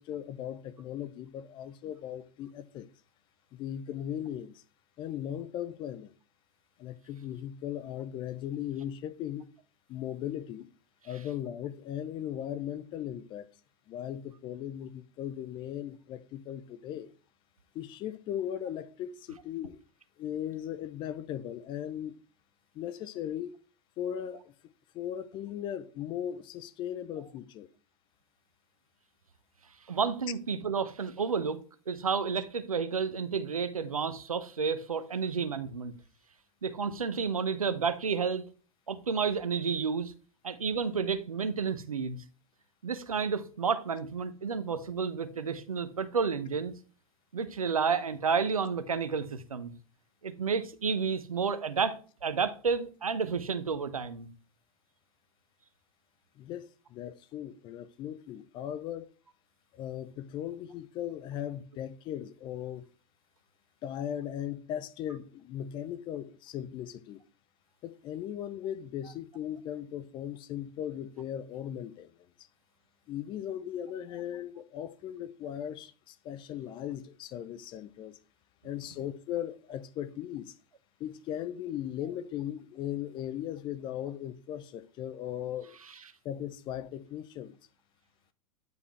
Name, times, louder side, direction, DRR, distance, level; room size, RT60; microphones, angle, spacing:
voice 1, 0.0-2.9 3.5-4.6 5.0-6.1 6.8-9.5 9.9-10.7 11.0-13.5 13.9-17.1 17.7-19.8 20.2-22.2 22.7-23.6 24.0-24.5 24.9-27.7 56.4-59.1 59.7-62.9 63.8-67.2 67.8-72.1 73.1-78.2 78.6-80.5 81.0-85.8 86.2-87.6, left 10 dB, 25° left, 0.5 m, -38 dB
voice 2, 29.9-35.9 36.6-38.4 38.9-40.1 40.4-42.2 42.8-46.7 47.3-49.7 50.2-54.3, right 5 dB, 75° right, 0.8 m, -31 dB
9.3 x 4.9 x 3.1 m
figure-of-eight pair, 95°, 18 cm